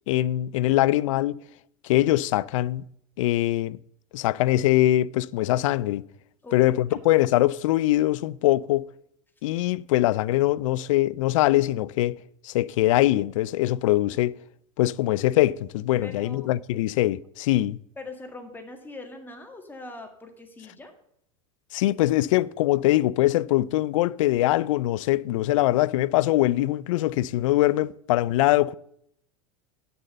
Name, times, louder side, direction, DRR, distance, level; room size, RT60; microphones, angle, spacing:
voice 1, 0.1-1.4 1.8-2.8 3.2-3.8 4.1-6.0 6.5-8.9 9.4-12.2 12.4-14.3 14.8-17.8 21.7-28.7, left 15 dB, 65° left, 0.4 m, -22 dB
voice 2, 16.0-16.5 18.0-20.9, left 2 dB, 10° left, 1.8 m, -41 dB
8.9 x 6.8 x 6.7 m
hypercardioid pair, 90°, 18 cm